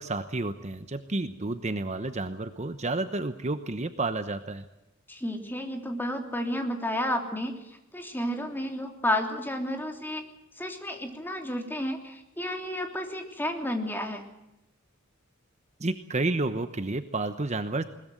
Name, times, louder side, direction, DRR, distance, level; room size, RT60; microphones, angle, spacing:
voice 1, 0.0-4.6 15.8-17.8, right 2 dB, 35° right, 10 dB, 1.0 m, -30 dB
voice 2, 5.1-10.2 10.6-14.3, left 1 dB, 10° left, 4 dB, 3.1 m, -31 dB
21.5 x 20.5 x 7.8 m, 0.89 s
head